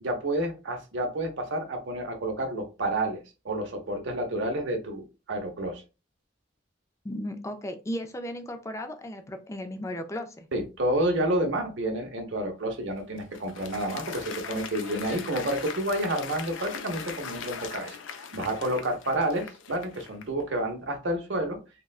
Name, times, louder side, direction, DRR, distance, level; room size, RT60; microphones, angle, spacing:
voice 1, 0.0-3.2 3.4-5.8 10.5-18.0 18.3-21.6, right 1 dB, 75° right, 4 dB, 0.8 m, -29 dB
voice 2, 7.0-10.5, left 1 dB, 15° left, 7 dB, 0.4 m, -35 dB
Applause, 12.8-20.4, left 6 dB, 85° left, 0.4 m, -40 dB
3.6 x 2.1 x 2.4 m, 0.30 s
head